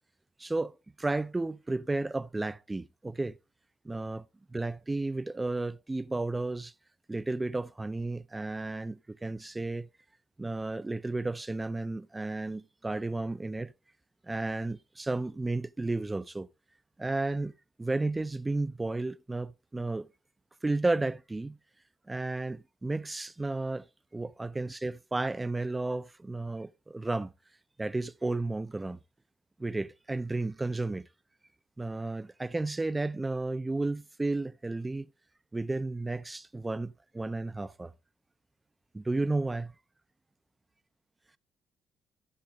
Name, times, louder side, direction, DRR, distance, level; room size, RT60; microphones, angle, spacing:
voice 1, 0.4-0.7 1.0-3.4 3.8-6.7 7.1-9.9 10.4-13.7 14.2-16.5 17.0-17.5 17.8-20.1 20.6-21.6 22.1-23.8 24.1-27.3 27.8-29.0 29.6-31.1 31.8-35.1 35.5-37.9 38.9-39.7, right 2 dB, 15° right, 0.5 m, -33 dB
13.5 x 6.1 x 3.8 m
cardioid pair, 90°, 0 cm